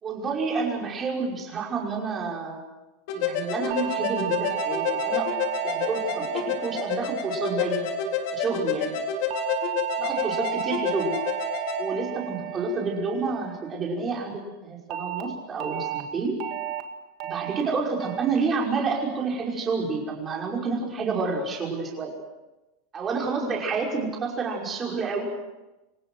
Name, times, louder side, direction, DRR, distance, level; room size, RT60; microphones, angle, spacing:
voice 1, 0.0-2.6 3.1-5.3 5.6-7.9 8.3-9.0 10.0-11.2 11.8-16.4 17.2-22.1 22.9-25.3, right 4 dB, 15° right, -1 dB, 5.6 m, -29 dB
sound 1, 3.1-11.8, left 6 dB, 50° left, 3.9 m, -29 dB
sound 2, 3.7-8.2 9.3-13.8 14.9-15.2 15.6-16.0 16.4-16.8 17.2-17.6 18.0-18.4 18.8-19.2, right 13 dB, 40° right, 2.2 m, -33 dB
29.0 x 24.0 x 6.3 m, 1.0 s
supercardioid pair, 180°, 0 cm